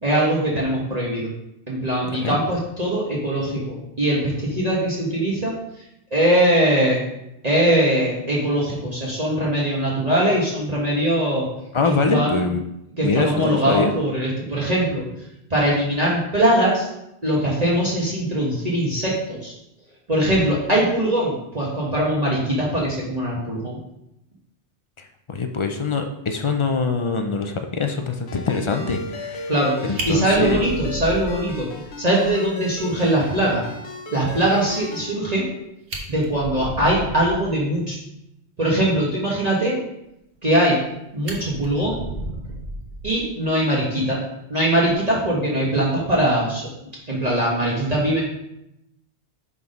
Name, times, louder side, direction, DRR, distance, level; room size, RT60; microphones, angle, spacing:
voice 1, 0.0-1.3 1.7-5.5 6.1-7.0 7.4-11.5 12.1-12.3 13.0-15.0 15.5-16.9 17.2-19.5 20.1-23.8 29.5-31.7 32.0-33.6 34.1-35.4 36.1-38.0 38.6-39.8 40.4-40.8 41.1-42.0 43.0-44.2 44.5-46.7 47.1-48.2, right 1 dB, 35° right, -5 dB, 1.3 m, -21 dB
voice 2, 11.7-12.6 13.0-13.9 25.0-29.5 29.8-30.6, left 4 dB, 55° left, 6 dB, 0.3 m, -24 dB
Ringtone, 28.3-35.1, left 2 dB, 70° left, 1.1 m, -35 dB
Fire, 30.0-31.9 32.2-32.3 32.7-32.8 33.2-33.3 35.4-35.5 35.8-37.5 40.4-40.9 41.2-43.4 44.7-45.0, right 1 dB, 60° right, 1.3 m, -33 dB
5.7 x 4.0 x 5.1 m, 0.84 s
omnidirectional pair, 1.2 m